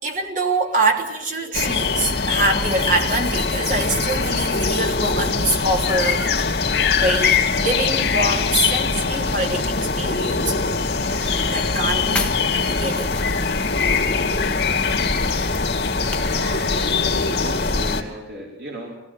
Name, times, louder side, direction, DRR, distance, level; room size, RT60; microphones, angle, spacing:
voice 1, 0.0-6.3 7.0-10.5 11.4-13.1 13.8-13.9 15.2-15.5 15.9-17.1, right 2 dB, 45° right, 2 dB, 3.3 m, -25 dB
sound 1, 1.5-18.0, left 4 dB, 60° left, 2.5 m, -22 dB
sound 2, 11.1-17.9, left 2 dB, 5° left, 1.7 m, -35 dB
voice 2, 16.9-19.0, equal, 75° right, -2 dB, 4.6 m, -35 dB
22.0 x 18.0 x 9.1 m, 0.87 s
head